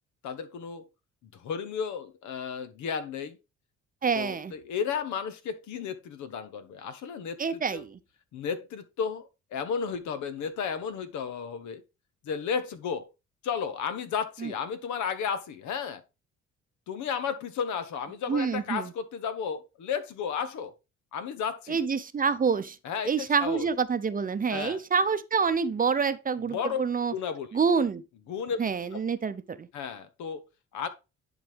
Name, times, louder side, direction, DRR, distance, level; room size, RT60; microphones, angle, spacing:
voice 1, 0.2-0.9 1.3-3.4 4.1-7.4 7.7-7.8 8.3-11.8 12.2-13.1 13.4-16.0 16.9-20.7 21.1-21.8 22.8-23.7 24.5-24.8 26.5-26.8 27.1-27.5 28.3-28.7 29.7-30.4 30.7-30.9, left 6 dB, 80° left, 1.2 m, -33 dB
voice 2, 4.0-4.5 7.4-8.0 14.4-14.5 18.3-18.9 21.7-22.8 23.0-27.1 27.5-28.0 28.6-29.7, right 5 dB, 30° right, 0.7 m, -27 dB
10.5 x 4.1 x 3.4 m
cardioid pair, 90°, 29 cm